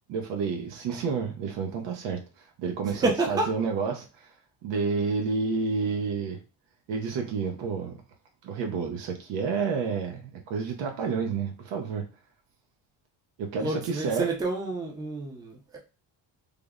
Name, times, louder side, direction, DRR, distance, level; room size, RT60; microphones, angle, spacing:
voice 1, 0.1-2.2 2.6-4.3 4.6-6.4 6.9-8.0 8.4-12.0 13.4-14.3, right 5 dB, 80° right, 0.7 m, -30 dB
voice 2, 2.8-3.5 13.6-15.8, right 3 dB, 10° right, 0.5 m, -29 dB
3.4 x 2.1 x 3.5 m
cardioid pair, 170°, 43 cm